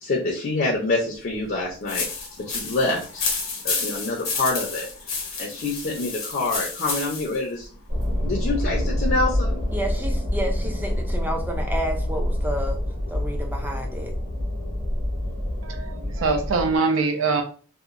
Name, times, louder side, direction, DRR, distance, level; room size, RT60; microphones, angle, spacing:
voice 1, 0.0-2.1 2.3-5.1 5.4-7.7 8.2-9.6, left 2 dB, 50° left, -2 dB, 0.5 m, -26 dB
sound 1, 1.9-7.4, left 4 dB, 80° left, 0.9 m, -30 dB
sound 2, 7.9-16.8, left 1 dB, 45° right, 1.3 m, -26 dB
voice 2, 9.7-12.8 13.1-14.1, equal, 10° right, 2 dB, 0.4 m, -30 dB
voice 3, 15.6-17.4, right 4 dB, 70° right, 4 dB, 0.4 m, -23 dB
2.8 x 2.1 x 2.5 m, 0.40 s
head